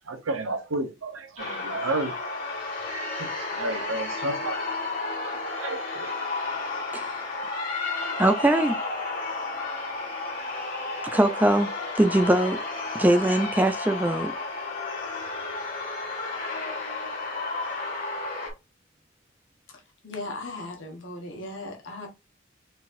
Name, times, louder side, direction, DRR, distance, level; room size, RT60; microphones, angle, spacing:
voice 1, 0.0-2.1 2.8-4.9 5.2-6.2, right 2 dB, 80° right, 0.9 m, -32 dB
sound 1, 1.4-18.5, left 3 dB, 40° left, 2.0 m, -32 dB
voice 2, 8.2-8.8 11.1-12.6 12.9-14.3, right 1 dB, 10° right, 0.4 m, -22 dB
voice 3, 20.0-22.1, left 2 dB, 65° left, 1.4 m, -37 dB
4.2 x 3.9 x 2.6 m
head